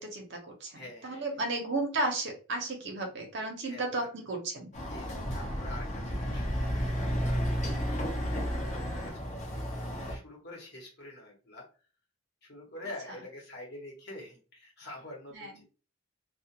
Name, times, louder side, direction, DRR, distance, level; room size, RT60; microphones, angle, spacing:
voice 1, 0.0-4.7 15.3-15.6, right 2 dB, 55° right, 3 dB, 0.7 m, -34 dB
voice 2, 0.7-1.3 3.6-4.1 4.9-7.5 7.7-11.7 12.4-15.6, left 1 dB, 50° left, -2 dB, 1.0 m, -47 dB
Chatter / Car passing by / Motorcycle, 4.7-10.1, equal, 35° left, 0.6 m, -32 dB
2.3 x 2.1 x 2.8 m, 0.36 s
head